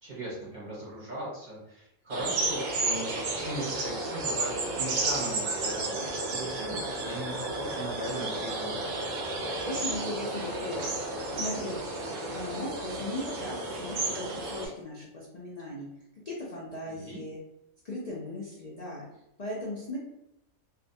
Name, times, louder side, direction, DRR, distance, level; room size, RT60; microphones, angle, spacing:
voice 1, 0.0-8.7 16.9-17.2, right 1 dB, 40° right, -6 dB, 0.7 m, -38 dB
sound 1, 2.1-14.7, right 2 dB, 90° right, 1.1 m, -32 dB
voice 2, 9.2-11.0 11.3-11.8 12.3-15.9 16.2-17.4 17.8-19.0 19.4-20.0, left 1 dB, 70° left, -5 dB, 0.4 m, -38 dB
2.6 x 2.1 x 2.6 m, 0.83 s
omnidirectional pair, 1.5 m